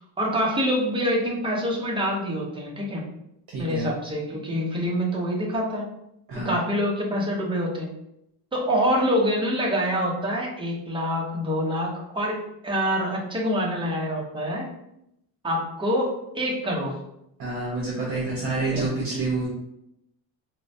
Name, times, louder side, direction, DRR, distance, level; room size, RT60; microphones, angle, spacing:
voice 1, 0.2-3.0 3.6-5.9 6.3-7.9 8.5-14.7 15.4-17.0 18.6-18.8, equal, 10° right, -2 dB, 0.5 m, -26 dB
voice 2, 3.5-3.9 6.3-6.6 17.4-19.5, right 3 dB, 45° right, -5 dB, 0.9 m, -28 dB
4.2 x 2.1 x 2.6 m, 0.80 s
cardioid pair, 145°, 47 cm